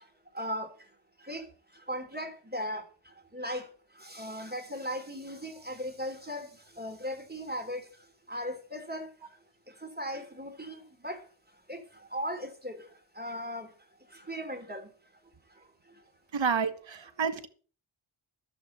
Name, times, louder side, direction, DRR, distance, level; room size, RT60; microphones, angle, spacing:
voice 1, 0.3-0.7 1.3-1.4 1.9-2.8 3.3-3.7 4.0-6.5 6.8-7.8 8.3-9.1 10.0-11.2 11.7-11.8 12.1-12.7 13.2-13.7 14.3-14.8, equal, 20° right, 3.3 m, -37 dB
voice 2, 16.3-17.5, right 6 dB, 65° right, 1.7 m, -29 dB
12.0 x 7.6 x 7.8 m
cardioid pair, 40°, 49 cm